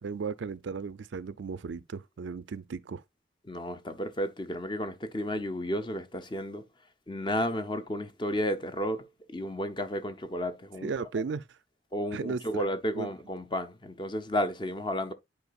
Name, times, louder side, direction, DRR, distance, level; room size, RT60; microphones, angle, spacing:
voice 1, 0.0-3.0 10.8-11.4 12.1-12.6 12.9-13.1, right 5 dB, 75° right, 0.4 m, -35 dB
voice 2, 3.5-6.6 7.1-10.9 11.9-15.1, equal, 25° left, 0.6 m, -32 dB
9.6 x 4.6 x 2.4 m
head